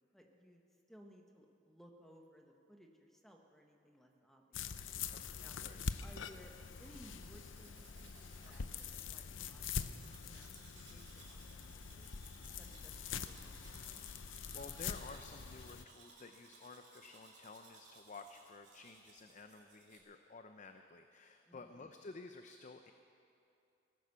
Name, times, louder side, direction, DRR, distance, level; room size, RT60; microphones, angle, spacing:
voice 1, 0.1-5.6 6.0-6.5 6.8-12.1 12.6-14.0 21.4-21.9, equal, ahead, 2 dB, 1.4 m, -61 dB
sound 1, 4.5-15.8, left 6 dB, 85° left, 0.6 m, -44 dB
voice 2, 5.1-5.8 14.5-22.9, left 3 dB, 40° left, 7 dB, 0.6 m, -53 dB
Domestic sounds home sounds, 6.4-20.0, right 4 dB, 65° right, 2.9 m, -62 dB
18.5 x 11.0 x 6.8 m, 2.7 s
head